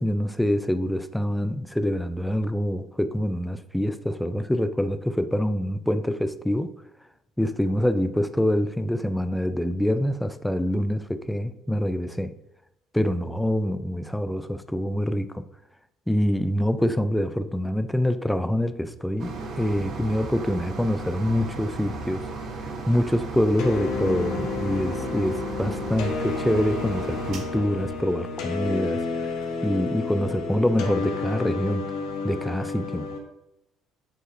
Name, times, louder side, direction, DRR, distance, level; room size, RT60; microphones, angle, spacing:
voice 1, 0.0-6.7 7.4-12.3 12.9-15.4 16.1-22.3 22.9-29.1 29.6-31.9 32.2-33.1, equal, 5° left, 12 dB, 0.3 m, -25 dB
sound 1, 19.2-28.7 29.3-29.4 29.8-29.9, right 3 dB, 55° right, 1.2 m, -35 dB
sound 2, 23.6-33.2, left 4 dB, 80° left, 1.0 m, -31 dB
7.7 x 4.8 x 2.5 m, 0.86 s
cardioid pair, 135°, 0 cm